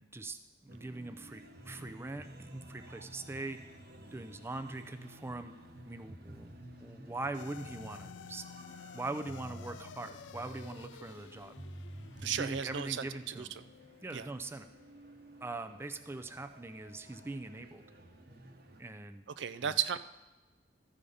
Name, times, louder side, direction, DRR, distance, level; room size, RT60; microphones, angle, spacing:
voice 1, 0.0-3.6 4.1-5.5 5.8-6.5 6.8-8.4 8.9-11.6 12.2-13.5 14.0-14.7 15.4-17.8 18.8-19.2 19.6-19.8, right 2 dB, 15° right, 8 dB, 0.4 m, -42 dB
sound 1, 0.7-18.8, right 1 dB, 60° right, 1.1 m, -52 dB
sound 2, 7.3-15.8, left 7 dB, 75° left, 0.4 m, -53 dB
voice 2, 12.2-13.5 14.1-14.3 19.4-20.0, right 8 dB, 75° right, 12 dB, 0.4 m, -34 dB
13.5 x 5.0 x 5.5 m, 1.1 s
head